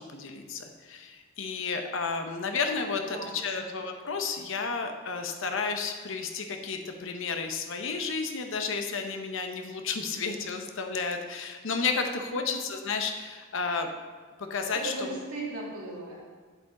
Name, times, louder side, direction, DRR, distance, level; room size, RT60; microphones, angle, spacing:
voice 1, 0.0-13.9 14.4-14.9, left 5 dB, 60° left, 5 dB, 0.8 m, -32 dB
voice 2, 3.1-3.7 12.3-12.6 14.7-16.2, right 2 dB, 85° right, -5 dB, 2.4 m, -37 dB
7.8 x 7.4 x 3.8 m, 1.5 s
head